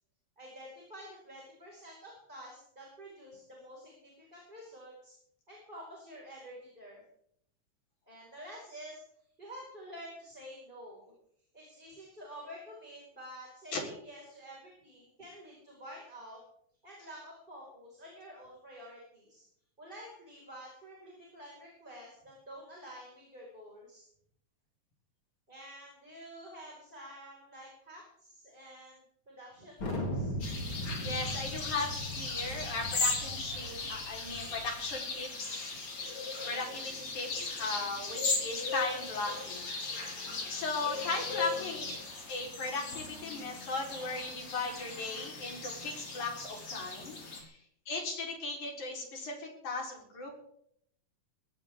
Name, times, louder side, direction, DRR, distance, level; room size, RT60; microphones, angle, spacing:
voice 1, 0.4-5.1 5.5-7.0 8.1-9.0 9.4-11.1 11.5-16.4 16.8-19.4 19.8-24.1 25.5-30.3 36.4-36.6 40.8-41.1 47.0-47.1, equal, 15° right, -3 dB, 5.2 m, -49 dB
Thunder, 29.8-35.0, equal, 40° left, 4.7 m, -39 dB
sound 1, 30.4-47.4, left 3 dB, 60° left, 5.4 m, -38 dB
voice 2, 31.0-35.7 36.5-39.7 40.5-41.8 42.3-47.2 47.4-47.6 47.9-50.4, left 3 dB, 80° left, 0 dB, 5.5 m, -37 dB
21.5 x 17.5 x 3.6 m, 0.71 s
omnidirectional pair, 3.4 m